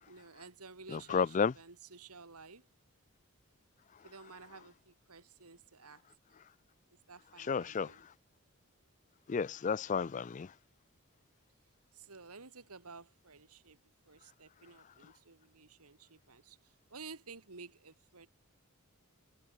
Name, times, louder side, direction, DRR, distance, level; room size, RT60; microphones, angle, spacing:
voice 1, 0.0-2.7 4.0-6.1 7.1-8.0 11.9-13.8 14.1-16.6 16.9-18.3, right 4 dB, 85° right, 2.4 m, -53 dB
voice 2, 0.9-1.5 7.5-7.9 9.3-10.5, left 5 dB, 35° left, 0.3 m, -32 dB
head